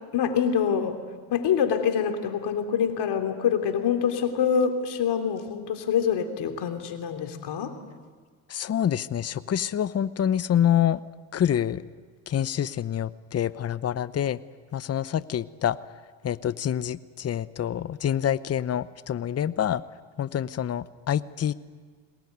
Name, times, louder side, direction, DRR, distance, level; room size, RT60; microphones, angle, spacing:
voice 1, 0.1-1.0 1.3-7.7, left 7 dB, 60° left, 6 dB, 3.1 m, -25 dB
voice 2, 8.5-11.0 11.3-11.8 12.3-14.4 14.7-15.8 16.2-19.8 20.2-21.5, left 10 dB, 35° left, 16 dB, 0.8 m, -26 dB
23.0 x 19.0 x 9.4 m, 1.5 s
supercardioid pair, 80°, 46 cm